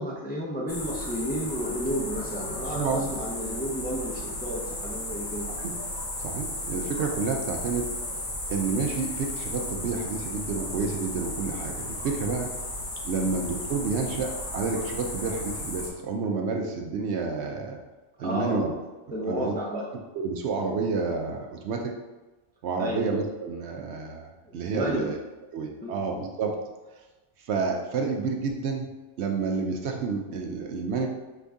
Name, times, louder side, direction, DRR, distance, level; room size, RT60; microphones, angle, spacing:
voice 1, 0.0-5.5 13.3-13.4 18.2-18.7 19.1-19.9 22.8-23.0 24.5-25.1 25.8-26.0, equal, 15° left, -4 dB, 0.4 m, -32 dB
sound 1, 0.7-15.9, left 1 dB, 45° left, 0.9 m, -34 dB
voice 2, 2.7-3.1 5.6-5.7 6.2-8.2 8.5-12.5 13.0-17.8 18.2-18.7 19.3-19.8 20.1-21.9 22.6-25.2 25.5-26.6 27.4-28.9 29.2-31.1, right 4 dB, 65° right, 2 dB, 0.8 m, -29 dB
5.3 x 2.6 x 3.4 m, 1.2 s
omnidirectional pair, 1.3 m